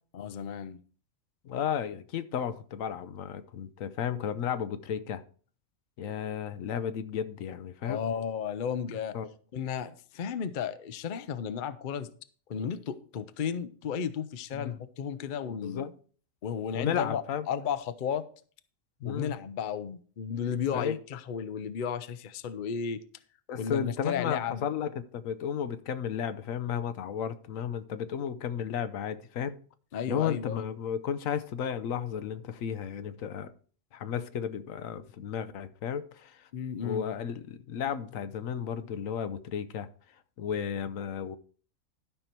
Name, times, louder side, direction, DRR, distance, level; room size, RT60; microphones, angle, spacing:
voice 1, 0.1-0.8 7.8-9.2 9.5-12.1 12.5-15.9 16.4-17.2 17.5-18.3 19.0-23.0 23.6-24.7 29.9-30.7 36.5-37.0, left 7 dB, 50° left, 0.7 m, -33 dB
voice 2, 1.4-5.2 6.0-8.0 9.1-9.3 14.6-14.8 15.4-15.9 16.7-17.4 19.0-19.3 20.6-21.0 23.5-29.6 30.1-33.5 33.9-36.5 36.8-39.9 40.4-41.4, left 8 dB, 80° left, 1.1 m, -33 dB
12.5 x 5.7 x 4.5 m
omnidirectional pair, 1.4 m